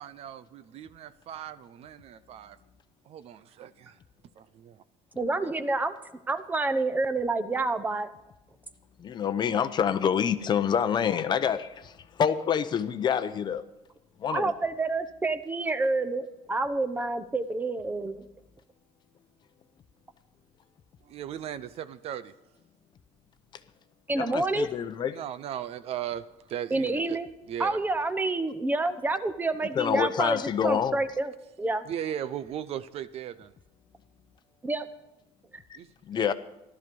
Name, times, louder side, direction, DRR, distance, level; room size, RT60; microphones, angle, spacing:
voice 1, 0.0-2.6 3.1-4.0 4.4-4.8 21.1-22.3 25.1-27.2 27.5-27.8 31.9-33.5 35.8-35.9 36.1-36.3, right 10 dB, 55° right, 15 dB, 0.6 m, -37 dB
voice 2, 5.2-6.0 6.3-8.1 14.3-18.2 24.1-24.7 26.7-27.3 27.6-31.3 31.6-31.8 34.7-34.8, right 2 dB, 15° right, 10 dB, 0.9 m, -28 dB
voice 3, 9.0-13.6 14.2-14.5 24.1-25.2 29.7-31.0 35.7-35.8 36.0-36.3, left 8 dB, 35° left, 11 dB, 0.7 m, -27 dB
15.5 x 12.5 x 5.3 m, 0.90 s
cardioid pair, 140°, 13 cm